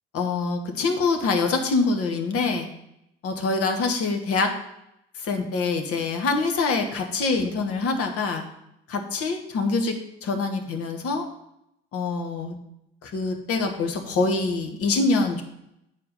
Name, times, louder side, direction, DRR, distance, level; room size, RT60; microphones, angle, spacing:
voice 1, 0.1-2.7 3.2-4.5 5.2-8.4 8.9-10.0 10.2-11.2 11.9-12.5 13.0-15.4, left 3 dB, 50° left, 4 dB, 1.2 m, -25 dB
8.2 x 4.5 x 5.5 m, 0.81 s
figure-of-eight pair, 50°, 31 cm